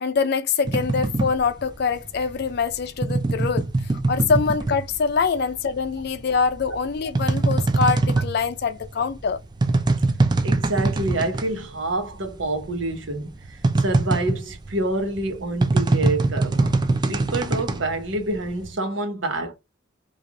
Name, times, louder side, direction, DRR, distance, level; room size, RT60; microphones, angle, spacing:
voice 1, 0.0-3.7 4.1-9.4, left 5 dB, 60° left, 0.4 m, -24 dB
sound 1, 0.7-5.4 5.7-11.6 11.9-12.0 12.2-18.7, right 3 dB, 25° right, 0.4 m, -23 dB
voice 2, 10.4-13.3 13.8-16.7 17.1-19.5, right 2 dB, 90° right, 1.0 m, -27 dB
3.2 x 2.4 x 3.7 m
head